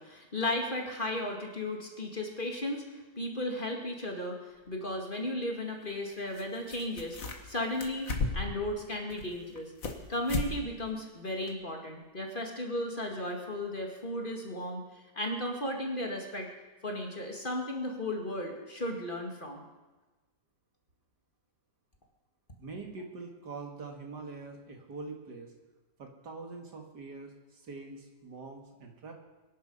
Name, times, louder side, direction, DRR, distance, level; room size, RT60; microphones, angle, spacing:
voice 1, 0.0-4.4 4.7-7.2 7.4-8.1 8.3-9.7 10.1-14.8 15.1-16.5 16.8-19.7, left 1 dB, 30° left, 1 dB, 2.3 m, -35 dB
sound 1, 4.7-4.8 6.3-6.4 6.7-7.5 7.8-8.6 9.1-10.0 10.3-10.5 10.9-11.0 11.5-11.6, left 3 dB, 50° left, 1.9 m, -34 dB
voice 2, 22.6-25.5 26.0-29.1, right 3 dB, 75° right, 2 dB, 2.6 m, -44 dB
24.0 x 10.5 x 5.5 m, 1.2 s
omnidirectional pair, 1.8 m